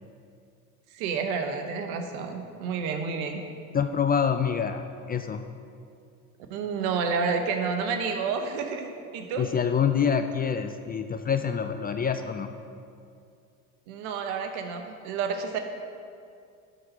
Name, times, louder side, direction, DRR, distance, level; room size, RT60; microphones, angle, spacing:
voice 1, 0.9-3.4 6.5-9.5 13.9-15.6, right 5 dB, 75° right, 5 dB, 1.1 m, -30 dB
voice 2, 3.7-5.4 9.4-12.5, left 7 dB, 20° left, 7 dB, 0.4 m, -26 dB
11.5 x 4.1 x 5.5 m, 2.4 s
hypercardioid pair, 70°, 44 cm